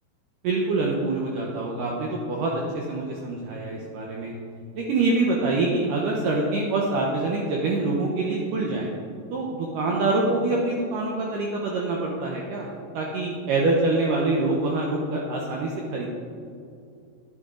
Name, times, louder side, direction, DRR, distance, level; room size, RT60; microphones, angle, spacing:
voice 1, 0.4-4.4 4.8-8.9 9.3-12.7 12.9-16.1, right 2 dB, 80° right, -1 dB, 1.9 m, -25 dB
10.0 x 9.7 x 3.8 m, 2.4 s
omnidirectional pair, 4.8 m